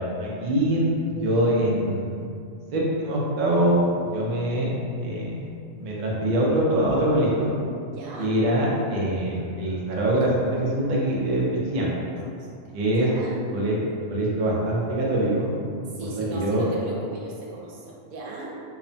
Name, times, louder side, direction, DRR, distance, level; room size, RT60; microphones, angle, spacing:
voice 1, 0.0-2.3 2.7-5.5 5.8-7.5 8.2-11.9 12.7-13.1 13.5-13.8 14.1-15.6 16.2-16.6, right 1 dB, 65° right, -4 dB, 0.4 m, -24 dB
voice 2, 7.9-8.3 12.4-13.4 15.9-18.6, right 3 dB, 90° right, -3 dB, 1.0 m, -37 dB
2.8 x 2.1 x 2.6 m, 2.4 s
omnidirectional pair, 1.4 m